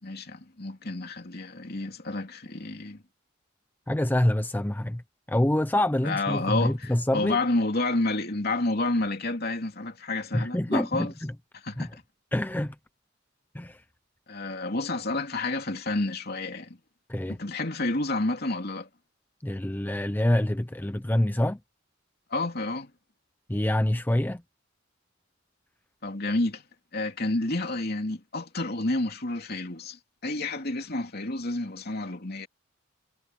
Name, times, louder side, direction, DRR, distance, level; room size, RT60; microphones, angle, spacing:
voice 1, 0.0-3.0 6.0-11.1 11.6-11.9 14.3-16.8 17.3-18.9 22.3-22.9 26.0-26.6 26.9-32.5, left 2 dB, 50° left, 2.9 m, -30 dB
voice 2, 3.9-5.0 5.3-7.4 10.3-11.3 11.8-11.9 12.3-12.8 13.5-13.8 17.1-17.4 19.4-21.6 23.5-24.4, left 1 dB, 10° left, 0.5 m, -26 dB
head